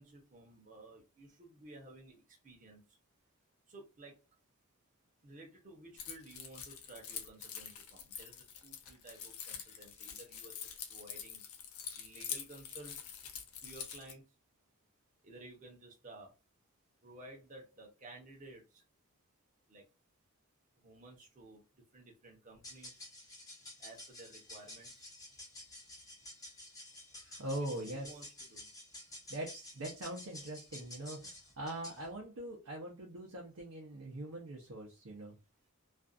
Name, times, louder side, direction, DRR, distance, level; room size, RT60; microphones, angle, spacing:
voice 1, 0.0-2.8 3.7-4.1 5.2-8.3 8.6-10.5 10.9-11.4 12.0-13.0 13.6-14.2 15.2-16.3 17.0-18.8 19.7-19.8 20.8-21.6 21.9-22.9 23.8-24.9 27.5-28.6, right 2 dB, 35° right, 0.8 m, -54 dB
Keys jangling, 6.0-14.1, left 8 dB, 75° left, 0.6 m, -45 dB
sound 1, 22.5-32.1, left 1 dB, 15° left, 0.6 m, -51 dB
voice 2, 27.1-28.2 29.3-35.4, right 1 dB, 65° right, 0.6 m, -42 dB
2.5 x 2.3 x 2.5 m
head